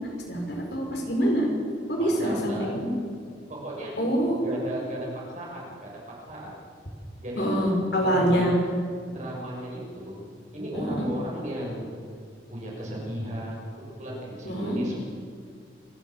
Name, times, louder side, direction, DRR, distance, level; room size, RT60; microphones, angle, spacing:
voice 1, 0.3-1.5 1.9-2.9 4.0-4.4 7.4-8.6 10.7-10.9 14.5-14.8, equal, 65° left, 0 dB, 5.4 m, -25 dB
voice 2, 2.0-2.7 3.5-6.0 6.2-6.6 7.2-7.5 7.9-8.5 9.0-10.2 10.5-12.0 12.5-15.0, equal, 40° right, -3 dB, 6.6 m, -35 dB
28.0 x 12.5 x 7.5 m, 2.2 s
head